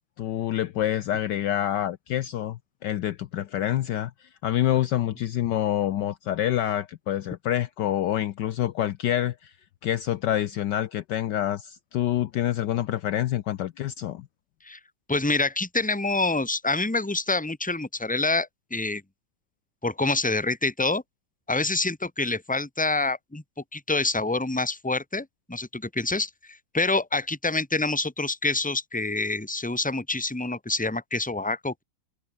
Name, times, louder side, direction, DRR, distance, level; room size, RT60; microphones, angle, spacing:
voice 1, 0.2-9.5 9.8-14.3, left 12 dB, 70° left, 1.2 m, -27 dB
voice 2, 15.1-19.0 19.8-21.0 21.5-23.4 23.7-31.8, left 3 dB, 5° left, 1.7 m, -27 dB
omnidirectional pair, 2.2 m